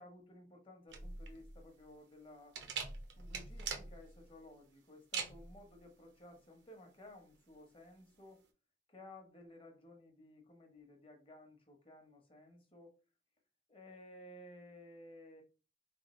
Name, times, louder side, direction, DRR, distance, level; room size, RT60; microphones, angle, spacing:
voice 1, 0.0-2.6 3.2-8.4 8.9-12.9 13.7-15.4, left 1 dB, 30° left, 0.9 m, -56 dB
sound 1, 0.9-8.5, right 5 dB, 90° right, 0.8 m, -45 dB
3.5 x 2.4 x 4.2 m
head